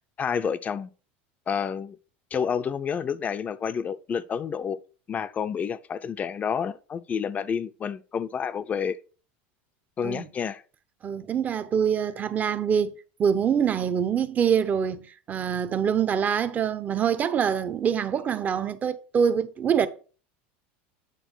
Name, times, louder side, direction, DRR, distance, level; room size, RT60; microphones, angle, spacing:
voice 1, 0.2-0.9 1.5-2.0 2.3-4.8 5.1-9.0 10.0-10.6, left 7 dB, 25° left, 0.5 m, -29 dB
voice 2, 11.0-19.9, right 7 dB, 25° right, 0.7 m, -25 dB
9.2 x 3.6 x 6.1 m
supercardioid pair, 135°, 6 cm